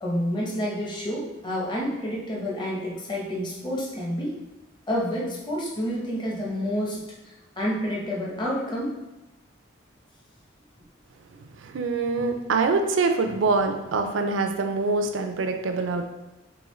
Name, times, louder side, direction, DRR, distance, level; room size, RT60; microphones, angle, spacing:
voice 1, 0.0-4.4 4.9-8.9, equal, 25° left, -4 dB, 0.8 m, -29 dB
voice 2, 11.7-16.1, right 3 dB, 75° right, 6 dB, 0.4 m, -24 dB
3.6 x 3.4 x 3.1 m, 0.99 s
head